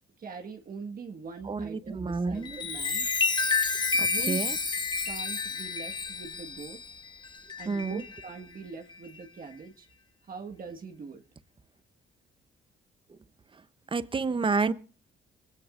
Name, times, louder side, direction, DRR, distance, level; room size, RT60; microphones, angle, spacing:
voice 1, 0.2-3.1 4.0-4.4 5.0-6.8 7.6-9.9 10.2-11.2, right 5 dB, 45° right, 1.7 m, -42 dB
voice 2, 1.4-2.6 4.0-4.6 7.7-8.0 13.9-14.7, right 4 dB, 25° right, 0.9 m, -29 dB
Chime, 2.3-8.3 8.9-9.2, left 4 dB, 20° left, 1.2 m, -30 dB
22.5 x 16.0 x 2.6 m
cardioid pair, 90°, 20 cm